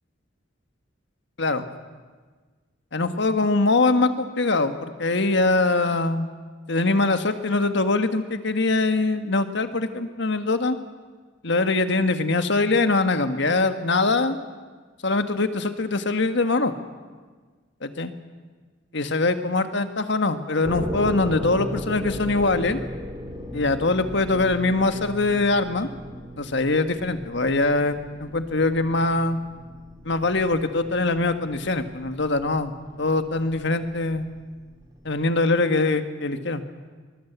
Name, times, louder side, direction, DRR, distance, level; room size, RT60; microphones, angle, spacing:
voice 1, 2.9-6.3 6.7-10.8 11.4-14.4 15.0-16.7 17.8-18.1 18.9-22.8 23.5-25.9 26.4-29.4 30.0-34.3 35.0-36.6, left 3 dB, 65° left, 9 dB, 1.6 m, -23 dB
sound 1, 20.6-35.4, equal, 20° right, 3.3 m, -37 dB
23.5 x 21.0 x 8.2 m, 1.4 s
head